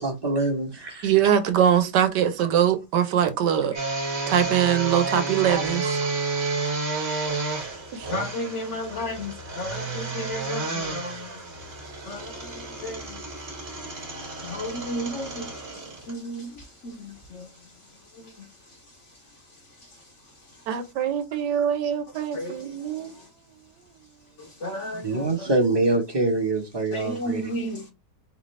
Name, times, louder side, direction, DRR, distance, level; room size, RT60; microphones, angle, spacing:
voice 1, 0.0-1.1 4.9-5.2 5.5-5.6 25.0-27.4, right 2 dB, 20° right, 0.9 m, -25 dB
voice 2, 1.0-3.7 4.3-6.0 7.9-8.1 20.7-23.1 24.9-25.0, right 9 dB, 85° right, 1.3 m, -23 dB
sound 1, 3.7-16.1 16.6-16.7 17.2-17.3, right 3 dB, 40° right, 1.4 m, -31 dB
voice 3, 8.1-11.3 12.1-13.2 14.4-15.5 16.1-17.5 18.1-18.3 22.3-22.6 24.4-25.5 26.9-27.9, left 1 dB, 55° left, 0.9 m, -33 dB
4.3 x 2.6 x 3.2 m
omnidirectional pair, 1.8 m